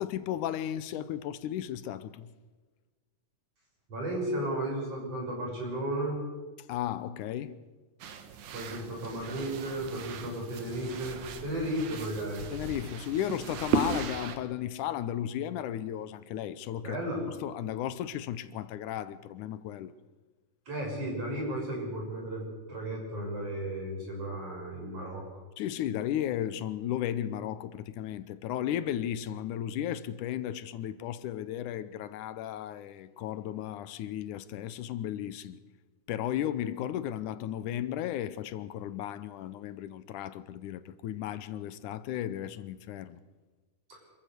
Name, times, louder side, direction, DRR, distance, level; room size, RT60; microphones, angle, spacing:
voice 1, 0.0-2.3 6.7-7.6 10.2-10.4 12.5-17.0 17.4-19.9 25.6-35.6 36.1-43.2, left 11 dB, 85° left, 2.3 m, -34 dB
voice 2, 3.9-6.2 8.5-12.5 16.8-17.2 20.7-22.4 22.7-25.4 43.9-44.0, right 1 dB, 50° right, 7.4 m, -34 dB
sound 1, 8.0-14.4, right 5 dB, 75° right, 2.9 m, -36 dB
26.5 x 14.5 x 6.7 m
omnidirectional pair, 3.6 m